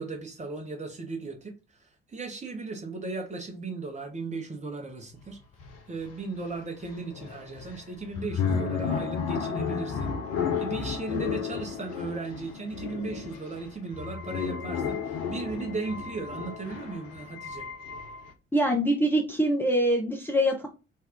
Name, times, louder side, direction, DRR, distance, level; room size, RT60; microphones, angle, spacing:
voice 1, 0.0-1.5 2.1-5.4 5.9-10.1 10.6-17.7, right 3 dB, 25° right, 1.0 m, -36 dB
sound 1, 5.2-5.3 5.6-18.3, left 6 dB, 60° left, 0.7 m, -33 dB
voice 2, 18.5-20.7, equal, 5° left, 0.6 m, -24 dB
2.7 x 2.3 x 3.4 m
figure-of-eight pair, 45°, 30 cm